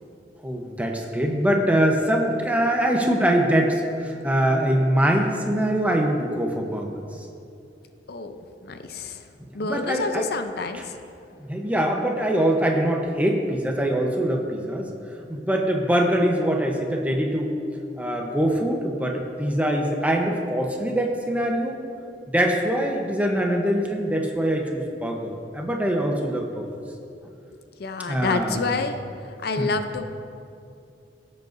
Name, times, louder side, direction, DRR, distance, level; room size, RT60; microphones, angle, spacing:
voice 1, 0.4-7.0 9.6-10.3 11.4-14.9 15.3-17.5 18.0-21.8 22.3-26.6 28.1-28.7 29.6-29.7, right 1 dB, 10° right, 1 dB, 0.9 m, -23 dB
voice 2, 8.1-9.2 9.5-11.0 27.8-29.0 29.4-30.0, left 3 dB, 65° left, 8 dB, 0.6 m, -28 dB
17.0 x 7.8 x 2.7 m, 2.5 s
head